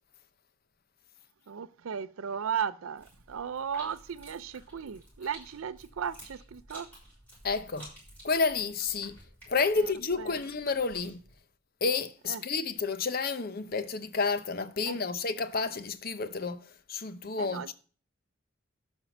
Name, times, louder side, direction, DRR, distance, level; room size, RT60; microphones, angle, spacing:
voice 1, 1.5-6.9 9.8-10.4 12.3-12.4 14.9-15.0 17.4-17.7, right 7 dB, 80° right, 0.5 m, -36 dB
sound 1, 3.0-11.4, equal, 10° left, 6.4 m, -52 dB
voice 2, 7.4-7.9 8.2-9.2 9.5-11.2 11.8-17.7, left 4 dB, 45° left, 0.7 m, -30 dB
12.0 x 4.5 x 7.0 m
head